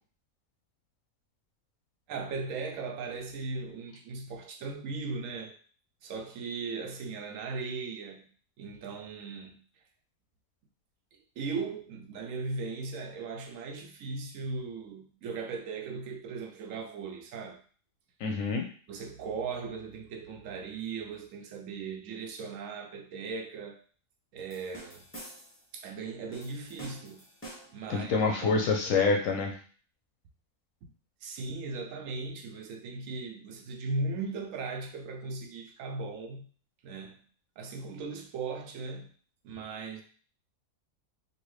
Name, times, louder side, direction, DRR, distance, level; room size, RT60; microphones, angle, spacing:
voice 1, 2.1-5.6 6.0-8.3 8.6-9.6 11.1-17.6 18.9-23.8 24.3-25.0 25.7-27.3 27.7-28.6 31.2-36.4 36.8-37.2 37.6-39.1 39.4-40.0, right 4 dB, 70° right, 0.9 m, -38 dB
voice 2, 18.2-18.7 27.9-29.5, left 4 dB, 70° left, 0.9 m, -26 dB
sound 1, 24.5-25.7 26.3-27.9, right 1 dB, 10° left, 0.6 m, -48 dB
2.8 x 2.7 x 3.1 m
omnidirectional pair, 1.6 m